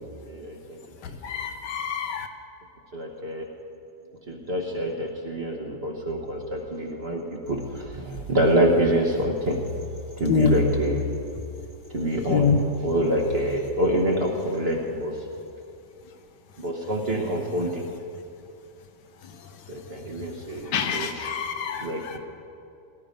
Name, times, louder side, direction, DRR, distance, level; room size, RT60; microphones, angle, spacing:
voice 1, 0.3-0.8 2.9-3.5 4.3-9.8 10.2-11.1 11.9-12.5 12.8-15.2 16.6-17.8 19.7-21.1 21.8-22.2, equal, 40° right, 1 dB, 1.2 m, -26 dB
voice 2, 1.0-2.3 10.3-10.6 12.3-12.6 20.5-22.2, left 6 dB, 80° left, 7 dB, 1.5 m, -25 dB
18.0 x 12.5 x 5.2 m, 2.6 s
omnidirectional pair, 1.8 m